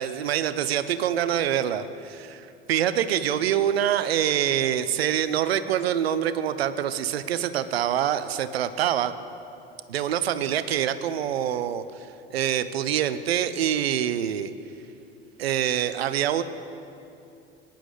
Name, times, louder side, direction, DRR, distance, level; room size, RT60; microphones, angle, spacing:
voice 1, 0.0-9.1 9.9-14.5 15.4-16.4, right 10 dB, 80° right, 12 dB, 0.7 m, -25 dB
20.5 x 10.5 x 3.9 m, 2.7 s
hypercardioid pair, 75°, 30 cm